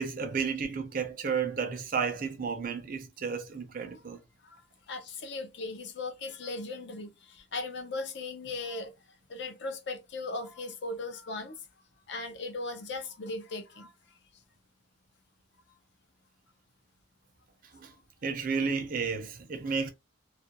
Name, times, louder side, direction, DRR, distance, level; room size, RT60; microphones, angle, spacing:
voice 1, 0.0-4.2 17.7-17.9 18.2-19.9, right 5 dB, 45° right, 0.5 m, -32 dB
voice 2, 4.9-8.9 9.3-11.6 12.1-13.9, left 3 dB, 60° left, 0.5 m, -38 dB
2.4 x 2.2 x 2.7 m
head